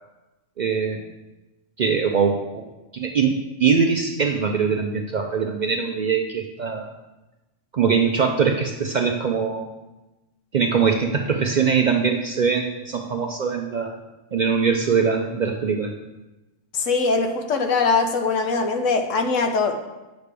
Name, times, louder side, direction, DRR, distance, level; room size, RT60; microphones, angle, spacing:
voice 1, 0.6-1.1 1.8-2.6 2.9-6.9 7.7-9.7 10.5-13.9 14.3-15.9, right 6 dB, 85° right, 3 dB, 0.4 m, -22 dB
voice 2, 16.7-19.7, left 4 dB, 65° left, 5 dB, 1.1 m, -21 dB
9.0 x 6.7 x 3.4 m, 1.1 s
omnidirectional pair, 1.5 m